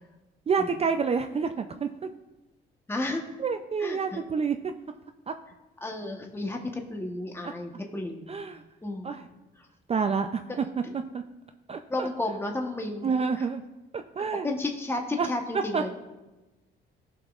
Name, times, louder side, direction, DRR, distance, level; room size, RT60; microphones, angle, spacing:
voice 1, 0.5-1.9 3.4-4.6 5.3-5.4 7.4-7.5 8.3-8.6 9.0-9.3 9.9-10.6 11.1-11.2 11.7-12.1 13.0-13.6 13.9-14.5 15.2-15.3 15.7-15.8, right 5 dB, 30° right, 7 dB, 0.4 m, -28 dB
voice 2, 2.9-3.2 3.8-4.2 5.8-8.3 8.8-9.2 10.5-10.9 11.9-13.5 14.4-16.0, left 2 dB, 10° left, 2 dB, 1.0 m, -33 dB
16.0 x 5.9 x 2.4 m, 1.1 s
cardioid pair, 90°, 20 cm